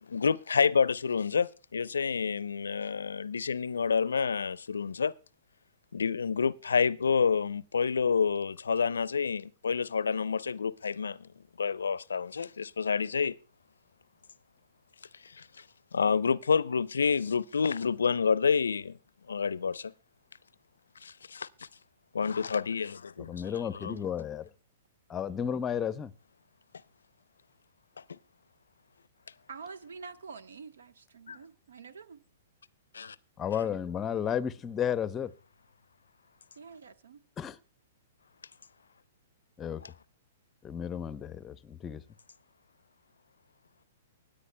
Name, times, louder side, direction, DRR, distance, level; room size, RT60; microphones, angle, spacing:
voice 1, 0.1-5.1 5.9-11.3 11.6-13.3 15.2-15.6 15.9-19.0 19.3-19.9 21.0-21.7 22.1-24.0 28.0-28.2 31.3-31.4 32.9-33.2 39.8-39.9, left 6 dB, 80° left, 0.5 m, -29 dB
voice 2, 23.3-24.5 25.1-26.1 33.4-35.3 37.4-37.6 39.6-39.8 40.6-42.0, left 8 dB, 20° left, 0.7 m, -33 dB
voice 3, 29.5-32.2 36.5-37.2, right 5 dB, 70° right, 1.0 m, -47 dB
25.0 x 10.0 x 2.2 m
hypercardioid pair, 120°, 0 cm